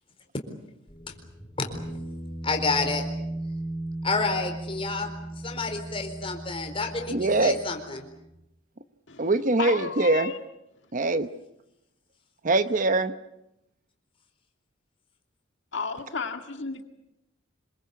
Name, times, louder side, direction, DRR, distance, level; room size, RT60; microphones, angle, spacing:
sound 1, 0.9-8.3, right 1 dB, 10° left, 7.3 m, -37 dB
voice 1, 2.4-3.0 4.0-5.1 5.4-8.0, left 3 dB, 25° left, 4 dB, 4.2 m, -29 dB
voice 2, 7.1-7.6 9.2-10.3 10.9-11.3 12.4-13.1, right 2 dB, 40° right, 11 dB, 0.9 m, -23 dB
voice 3, 9.6-10.4 15.7-16.8, left 5 dB, 60° left, 6 dB, 2.0 m, -33 dB
26.5 x 22.5 x 8.3 m, 0.85 s
head